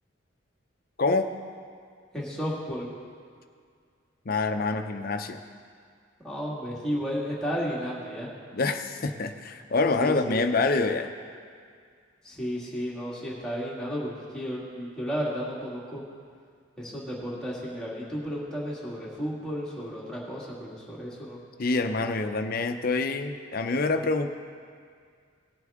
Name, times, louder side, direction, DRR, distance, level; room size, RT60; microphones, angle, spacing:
voice 1, 1.0-1.3 4.3-5.4 8.5-11.1 21.6-24.3, left 3 dB, 45° left, 7 dB, 0.6 m, -26 dB
voice 2, 2.1-2.9 6.2-8.3 10.0-10.5 12.2-16.0 16.8-21.4, equal, 5° left, -6 dB, 2.0 m, -33 dB
18.5 x 8.1 x 3.6 m, 2.1 s
head